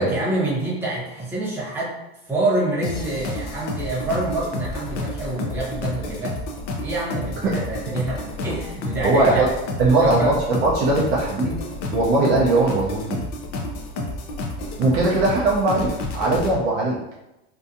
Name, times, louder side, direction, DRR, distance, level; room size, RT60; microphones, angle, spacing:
voice 1, 0.0-1.9 2.3-6.3 6.8-9.5 10.0-10.3, right 2 dB, 5° right, -6 dB, 0.7 m, -26 dB
sound 1, 2.8-16.5, left 2 dB, 35° left, 0.4 m, -30 dB
voice 2, 9.0-9.5 9.8-11.6 11.9-13.2 14.8-17.0, right 2 dB, 40° right, -4 dB, 0.5 m, -20 dB
2.7 x 2.2 x 2.5 m, 0.92 s
supercardioid pair, 140°, 31 cm